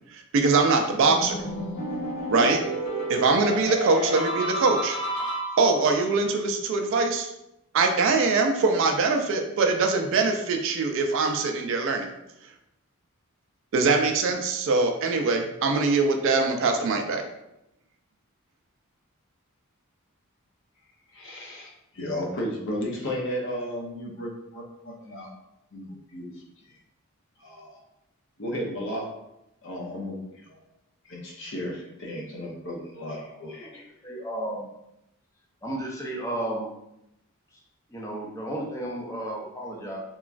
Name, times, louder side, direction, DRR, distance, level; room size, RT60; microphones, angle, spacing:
voice 1, 0.1-1.4 2.3-2.6 3.1-5.0 5.6-7.3 7.7-12.1 13.7-17.2, right 3 dB, 60° right, 4 dB, 0.3 m, -23 dB
sound 1, 1.0-5.9, right 1 dB, 30° left, 1.4 m, -30 dB
voice 2, 21.1-25.3 25.7-26.3 26.6-26.8 27.4-27.8 28.4-29.1 29.6-30.6 31.0-33.9 34.2-34.3, equal, 55° left, -1 dB, 0.6 m, -34 dB
voice 3, 34.0-34.6 35.6-36.7 37.9-40.0, right 1 dB, 15° left, -2 dB, 0.5 m, -33 dB
2.9 x 2.3 x 2.4 m, 0.85 s
head